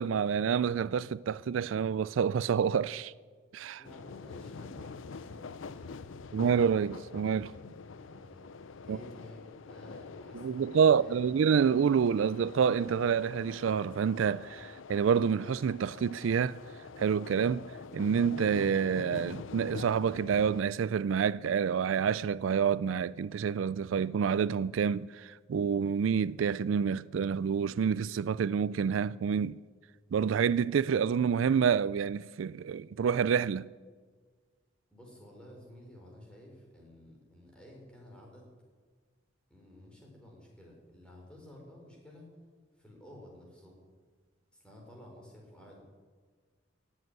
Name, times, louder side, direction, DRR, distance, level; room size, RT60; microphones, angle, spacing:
voice 1, 0.0-3.1 3.5-3.8 6.3-7.5 8.9-9.0 10.3-16.6 17.0-17.6 17.9-29.6 30.1-33.7, right 7 dB, 85° right, 0.4 m, -28 dB
sound 1, 3.8-20.6, left 4 dB, 85° left, 0.6 m, -45 dB
voice 2, 3.8-6.2 8.0-8.5 8.8-11.3 34.9-38.5 39.5-42.3 42.8-43.8 44.5-45.8, left 1 dB, 5° left, 4.5 m, -53 dB
17.5 x 7.8 x 9.3 m
head